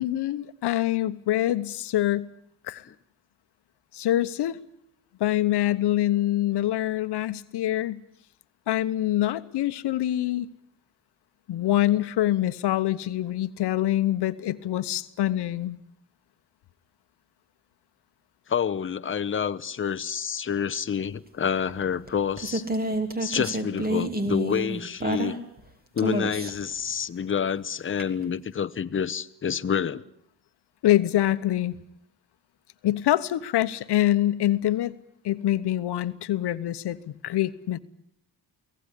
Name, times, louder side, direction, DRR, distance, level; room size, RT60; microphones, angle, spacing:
voice 1, 0.0-2.3 2.6-2.9 3.9-4.6 5.2-8.0 8.7-10.5 11.5-15.8 30.8-31.8 32.8-34.9 35.2-37.8, left 13 dB, 75° left, 13 dB, 1.1 m, -25 dB
voice 2, 18.5-22.7 23.2-25.4 25.9-30.0, left 7 dB, 30° left, 10 dB, 0.9 m, -28 dB
sound 1, 21.7-25.6 26.0-26.7 28.0-28.1, right 1 dB, 20° right, 3.2 m, -29 dB
24.0 x 17.5 x 9.9 m, 0.71 s
cardioid pair, 105°, 41 cm